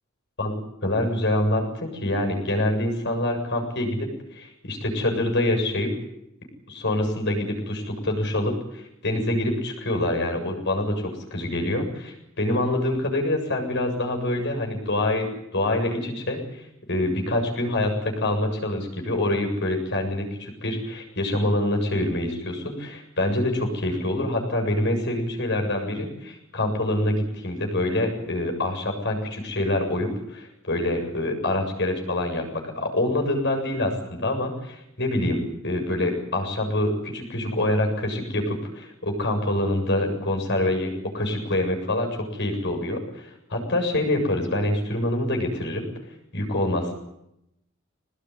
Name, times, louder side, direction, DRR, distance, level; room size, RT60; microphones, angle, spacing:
voice 1, 0.8-5.9 6.7-16.4 16.9-45.9 46.3-46.9, left 1 dB, 60° left, 3 dB, 7.5 m, -26 dB
24.0 x 19.5 x 9.9 m, 0.83 s
head